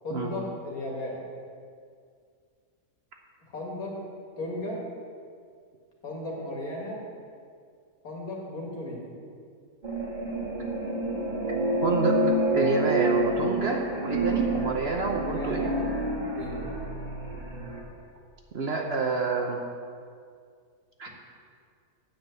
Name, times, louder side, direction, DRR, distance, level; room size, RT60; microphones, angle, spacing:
voice 1, 0.0-1.1 3.5-4.0 4.4-4.8 6.0-7.0 8.0-9.2 15.1-15.8 16.4-16.7, left 1 dB, 70° left, -2 dB, 2.5 m, -35 dB
sound 1, 9.8-17.8, right 1 dB, 30° right, 1.5 m, -28 dB
voice 2, 11.8-12.2 12.5-15.7 18.5-19.6 21.0-21.1, right 4 dB, 50° right, 1 dB, 0.9 m, -28 dB
8.9 x 5.8 x 8.1 m, 2.2 s
omnidirectional pair, 1.6 m